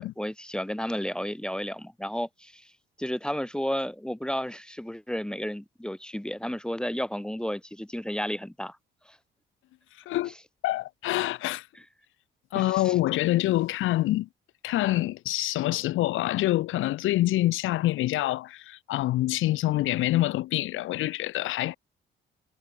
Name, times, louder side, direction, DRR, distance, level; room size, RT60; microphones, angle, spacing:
voice 1, 0.0-2.7 3.0-8.8 9.1-9.2 12.6-12.9, equal, 5° left, 1.9 m, -32 dB
voice 2, 9.9-10.3 10.6-11.7 12.5-14.3 14.6-21.8, left 16 dB, 85° left, 0.8 m, -26 dB
cardioid pair, 90°, 20 cm